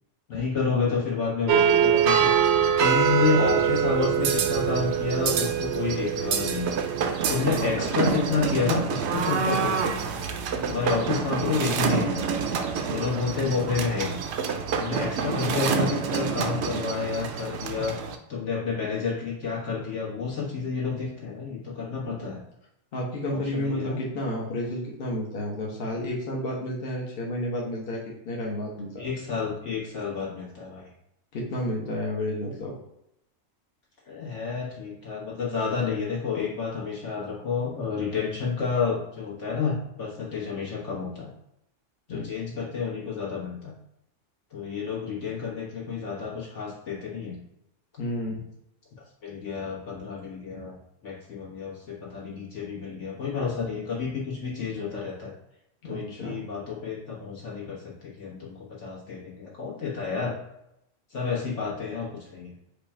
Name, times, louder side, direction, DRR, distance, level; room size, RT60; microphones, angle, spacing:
voice 1, 0.3-2.3 2.8-6.7 7.3-10.0 10.6-12.3 12.9-14.2 14.7-18.0 18.3-22.4 23.3-24.0 29.0-30.9 34.1-41.3 42.1-43.7 44.5-47.4 48.3-48.4 49.2-50.8 51.0-55.3 55.8-60.4 61.1-62.5, left 5 dB, 75° left, -5 dB, 1.8 m, -30 dB
sound 1, 1.5-18.2, right 7 dB, 70° right, 0.8 m, -25 dB
voice 2, 13.4-13.7 17.7-17.8 22.0-22.2 22.9-29.0 31.3-32.8 42.1-42.3 48.0-48.4 55.8-56.4, left 1 dB, 55° left, -3 dB, 1.0 m, -31 dB
4.9 x 2.4 x 4.2 m, 0.81 s
omnidirectional pair, 1.2 m